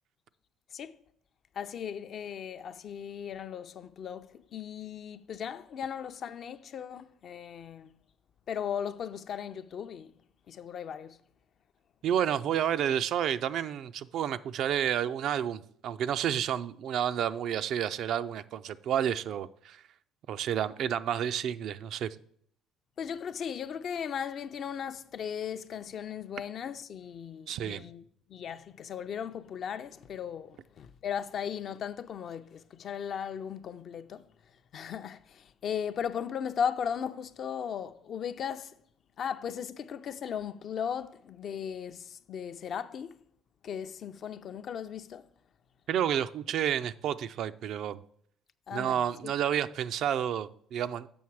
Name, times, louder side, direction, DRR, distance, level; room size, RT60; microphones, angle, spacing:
voice 1, 1.6-7.9 8.5-10.1 10.5-11.2 23.0-28.0 28.3-34.2 34.7-38.7 39.2-43.1 43.6-45.3 48.7-49.3, left 8 dB, 55° left, 0.4 m, -37 dB
voice 2, 12.0-19.8 20.3-22.2 27.5-27.8 45.9-48.0 48.7-51.1, right 9 dB, 65° right, 0.3 m, -30 dB
7.1 x 5.7 x 4.7 m
supercardioid pair, 75°, 0 cm